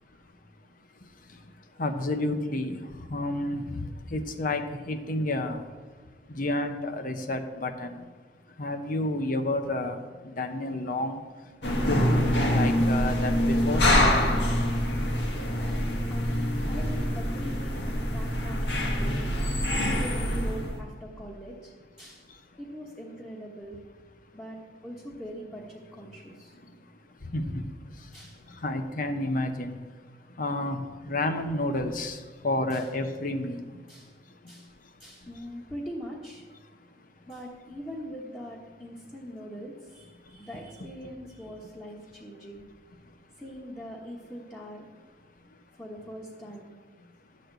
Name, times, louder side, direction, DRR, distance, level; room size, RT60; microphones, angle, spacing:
voice 1, 1.8-2.8 3.1-3.6 4.1-4.6 4.9-5.6 6.4-8.0 8.6-10.0 10.4-11.2 11.9-12.0 12.5-13.8 27.3-27.4 28.6-29.8 30.4-30.8 31.1-32.2 32.4-33.6, left 2 dB, 50° left, 7 dB, 0.9 m, -29 dB
sound 1, 11.6-20.8, equal, 80° left, 1.7 m, -25 dB
voice 2, 16.1-17.7 18.0-19.1 19.9-21.7 22.0-22.3 22.6-23.8 24.3-26.5 28.1-28.4 32.0-32.1 32.7-32.9 33.9-34.1 34.5-34.7 35.0-36.4 37.3-42.6 43.4-44.8 45.8-46.8, equal, 10° left, -4 dB, 1.3 m, -42 dB
11.5 x 4.3 x 7.9 m, 1.4 s
head